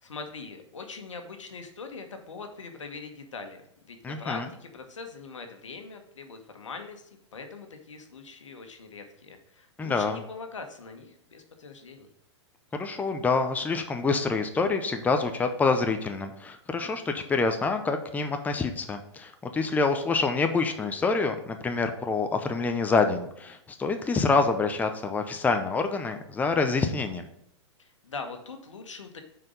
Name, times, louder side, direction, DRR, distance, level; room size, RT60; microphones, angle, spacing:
voice 1, 0.0-12.1 27.8-29.2, left 4 dB, 90° left, 6 dB, 1.3 m, -42 dB
voice 2, 4.0-4.4 9.8-10.2 12.7-27.2, left 4 dB, 10° left, 6 dB, 0.6 m, -26 dB
6.1 x 4.6 x 5.2 m, 0.78 s
hypercardioid pair, 120°, 15 cm